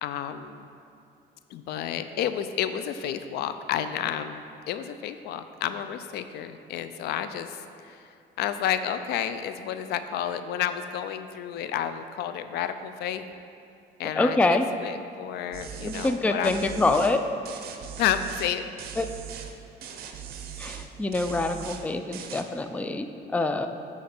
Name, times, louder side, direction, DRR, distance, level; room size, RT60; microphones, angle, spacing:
voice 1, 0.0-0.7 1.5-8.1 8.4-13.2 14.0-16.9 18.0-18.6, left 9 dB, 75° left, 10 dB, 0.4 m, -31 dB
voice 2, 14.2-14.7 15.8-17.2 19.0-19.1 20.6-23.7, left 2 dB, 10° left, 8 dB, 0.3 m, -25 dB
sound 1, 15.5-16.2 16.4-17.2 17.4-18.5 18.8-19.5 19.8-20.9 21.1-21.8 22.1-22.4, right 8 dB, 65° right, 0.7 m, -39 dB
8.5 x 4.9 x 4.4 m, 2.6 s
cardioid pair, 110°, 17 cm